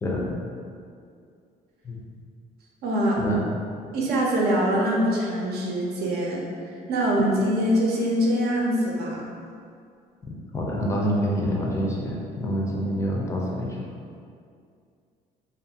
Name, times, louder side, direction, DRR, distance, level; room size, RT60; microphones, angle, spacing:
voice 1, 0.0-0.4 1.8-2.0 3.2-3.4 10.3-13.8, equal, 15° left, -3 dB, 0.4 m, -27 dB
voice 2, 2.8-3.2 3.9-6.4 6.9-9.2, equal, 70° right, -3 dB, 0.6 m, -23 dB
2.4 x 2.4 x 2.7 m, 2.3 s
cardioid pair, 110°, 17 cm